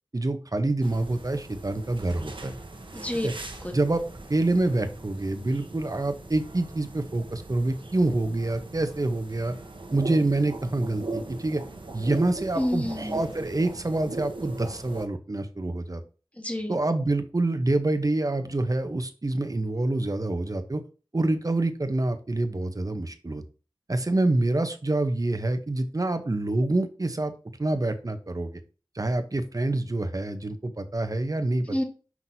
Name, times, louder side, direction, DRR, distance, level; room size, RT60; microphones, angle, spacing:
voice 1, 0.1-2.5 3.2-3.3 3.7-4.0 4.3-9.5 9.9-11.6 11.9-16.0 16.7-20.8 21.1-23.4 23.9-27.3 27.6-28.6 28.9-31.7, right 2 dB, 45° right, 8 dB, 0.8 m, -26 dB
sound 1, 0.8-15.1, right 2 dB, 75° right, 1.0 m, -39 dB
voice 2, 2.9-3.3 3.6-3.7 12.5-13.2 16.3-16.8 31.7-31.8, left 1 dB, 15° left, 5 dB, 1.3 m, -29 dB
5.9 x 5.8 x 2.7 m, 0.36 s
wide cardioid pair, 45°, 9 cm